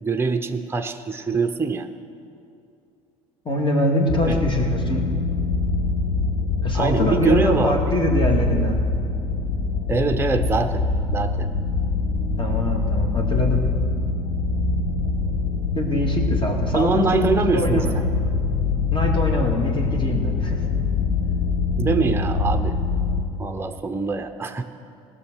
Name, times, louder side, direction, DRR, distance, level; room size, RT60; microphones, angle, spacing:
voice 1, 0.0-1.9 4.2-4.4 6.7-8.0 9.9-10.9 11.1-11.5 16.7-18.0 21.8-22.8 23.4-24.6, right 4 dB, 15° right, 6 dB, 0.7 m, -24 dB
voice 2, 3.4-5.1 6.6-8.8 12.4-13.6 15.8-18.0 18.9-20.6, left 1 dB, 30° left, 1 dB, 2.3 m, -24 dB
sound 1, 4.1-23.2, left 3 dB, 60° left, 1.6 m, -24 dB
18.0 x 6.5 x 6.3 m, 2.5 s
hypercardioid pair, 70°, 18 cm